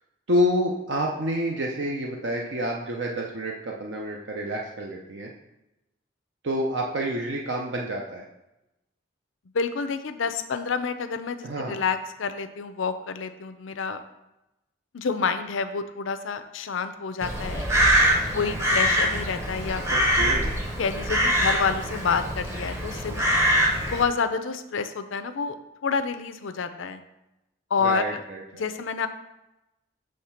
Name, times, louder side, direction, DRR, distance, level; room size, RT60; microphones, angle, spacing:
voice 1, 0.3-5.3 6.4-8.2 11.4-11.8 19.9-20.5 27.8-28.7, equal, 60° right, 0 dB, 0.6 m, -28 dB
voice 2, 9.5-14.0 14.9-17.7 18.3-19.8 20.8-23.3 23.9-25.6 25.8-27.0 27.7-28.2 28.6-29.1, left 5 dB, 75° left, 9 dB, 0.5 m, -28 dB
Crow, 17.2-24.0, equal, 15° right, 0.8 m, -24 dB
6.5 x 3.3 x 5.7 m, 0.94 s
head